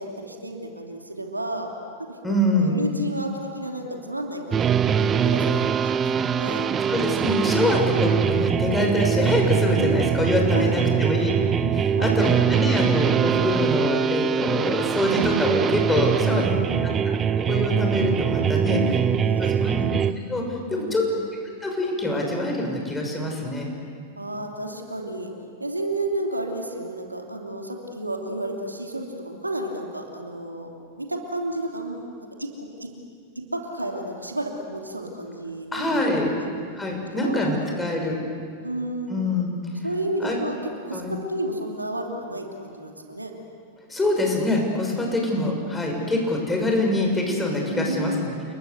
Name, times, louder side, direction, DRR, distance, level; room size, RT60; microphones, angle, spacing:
voice 1, 0.0-1.7 2.0-2.2 2.5-6.6 9.8-10.2 10.5-11.3 12.0-12.4 16.2-17.0 18.7-19.9 20.7-21.1 24.2-25.3 25.6-30.7 31.0-32.9 33.3-36.0 36.3-36.5 37.1-37.9 38.6-39.3 39.8-40.6 40.8-43.3 47.6-48.2, right 1 dB, 90° right, 2 dB, 2.9 m, -32 dB
voice 2, 2.2-2.8 6.9-11.3 11.6-16.5 16.8-19.0 19.4-20.0 20.3-21.0 21.6-23.7 35.7-36.3 36.8-38.2 39.1-39.5 40.2-40.4 40.9-41.1 43.9-48.3, left 1 dB, 10° left, 1 dB, 6.6 m, -25 dB
sound 1, 4.5-20.1, right 7 dB, 25° right, 0.9 m, -22 dB
29.5 x 22.0 x 8.1 m, 2.2 s
figure-of-eight pair, 95°, 0 cm